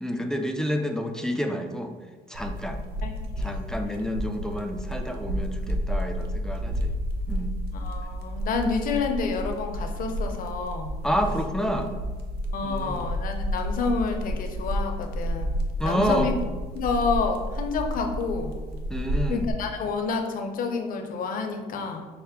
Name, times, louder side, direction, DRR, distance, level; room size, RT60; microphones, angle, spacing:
voice 1, 0.0-1.9 2.3-2.8 3.4-6.9 7.3-7.6 11.0-11.9 12.6-13.1 15.8-16.3 18.9-19.5, equal, 5° left, 4 dB, 0.3 m, -29 dB
sound 1, 2.3-19.5, equal, 75° right, 0.6 m, -31 dB
voice 2, 3.0-3.6 7.7-10.9 12.5-15.5 15.8-16.3 16.7-18.6 19.3-22.1, left 4 dB, 55° left, 4 dB, 0.6 m, -29 dB
5.6 x 2.1 x 3.5 m, 1.3 s
cardioid pair, 110°, 17 cm